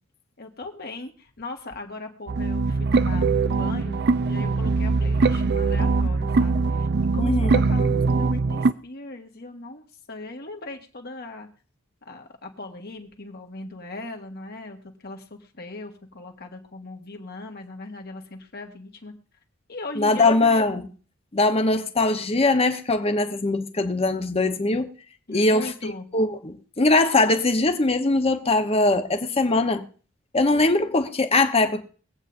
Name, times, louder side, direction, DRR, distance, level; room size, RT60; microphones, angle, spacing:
voice 1, 0.4-6.9 7.1-11.5 12.0-19.1 19.7-20.3 25.3-26.0, left 2 dB, 50° left, 1.6 m, -39 dB
sound 1, 2.3-8.7, right 4 dB, 55° right, 0.5 m, -22 dB
voice 2, 7.2-7.6 20.0-20.9 21.3-24.9 25.3-29.9 30.3-31.8, left 2 dB, 30° left, 0.9 m, -21 dB
23.5 x 8.3 x 2.6 m
head